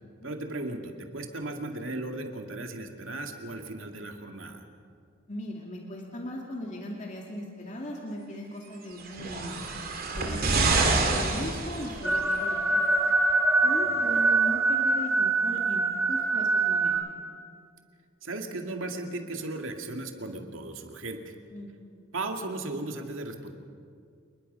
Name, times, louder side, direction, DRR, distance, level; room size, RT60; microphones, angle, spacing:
voice 1, 0.2-4.6 13.8-14.1 18.2-21.3 22.1-23.5, right 2 dB, 85° right, 4 dB, 2.3 m, -36 dB
voice 2, 5.3-9.6 10.1-12.9 13.6-17.0 21.5-21.7, left 1 dB, 40° left, -1 dB, 2.4 m, -38 dB
sound 1, 9.0-12.4 13.3-13.4, right 3 dB, 50° right, 2.7 m, -27 dB
sound 2, 12.0-17.0, right 3 dB, 5° right, 2.1 m, -24 dB
28.0 x 21.0 x 5.6 m, 2.2 s
head